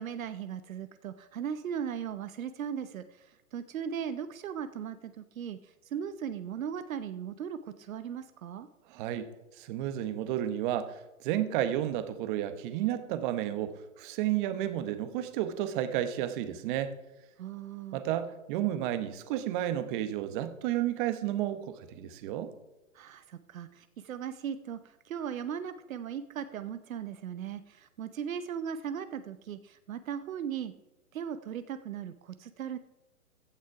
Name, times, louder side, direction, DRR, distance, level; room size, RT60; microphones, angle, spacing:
voice 1, 0.0-8.7 17.4-18.0 22.9-30.7 31.1-32.8, right 8 dB, 70° right, 12 dB, 0.8 m, -38 dB
voice 2, 8.9-9.2 9.6-16.9 17.9-22.5, right 12 dB, 35° right, 11 dB, 1.1 m, -32 dB
15.5 x 6.4 x 4.8 m, 1.0 s
hypercardioid pair, 130°, 42 cm